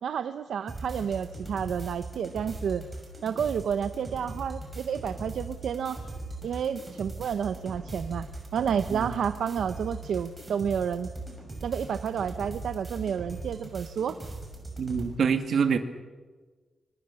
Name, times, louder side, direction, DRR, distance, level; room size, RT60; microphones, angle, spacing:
voice 1, 0.0-2.8 3.2-6.0 6.4-8.3 8.5-11.1 11.6-14.2, right 7 dB, 80° right, 10 dB, 0.9 m, -30 dB
sound 1, 0.7-15.1, right 2 dB, 15° right, 6.3 m, -40 dB
voice 2, 14.8-15.8, right 6 dB, 60° right, 8 dB, 2.2 m, -25 dB
25.5 x 24.0 x 7.1 m, 1.4 s
wide cardioid pair, 160°, 0 cm